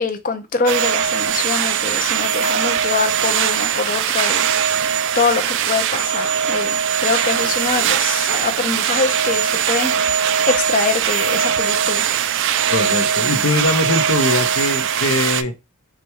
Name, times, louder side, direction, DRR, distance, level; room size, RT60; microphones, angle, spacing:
voice 1, 0.0-4.7 5.1-12.1, left 4 dB, 40° left, 8 dB, 0.7 m, -24 dB
sound 1, 0.7-15.4, right 8 dB, 55° right, 0.3 m, -20 dB
voice 2, 12.7-15.5, left 2 dB, 65° left, 6 dB, 0.9 m, -21 dB
4.8 x 2.3 x 2.9 m, 0.24 s
head